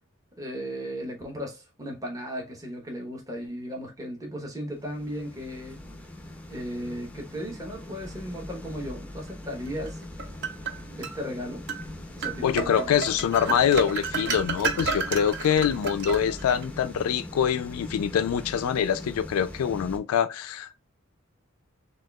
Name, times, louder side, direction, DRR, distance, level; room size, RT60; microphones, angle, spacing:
voice 1, 0.4-5.8 6.5-10.0 11.0-11.6 12.2-12.9 13.2-13.4, equal, 15° right, 0.8 m, -36 dB
sound 1, 4.7-20.0, left 1 dB, 5° left, 0.5 m, -41 dB
sound 2, 9.9-11.2 11.7-11.9 12.2-16.7, right 5 dB, 55° right, 0.6 m, -32 dB
voice 2, 12.4-20.8, left 8 dB, 80° left, 0.3 m, -25 dB
6.2 x 2.3 x 2.2 m
head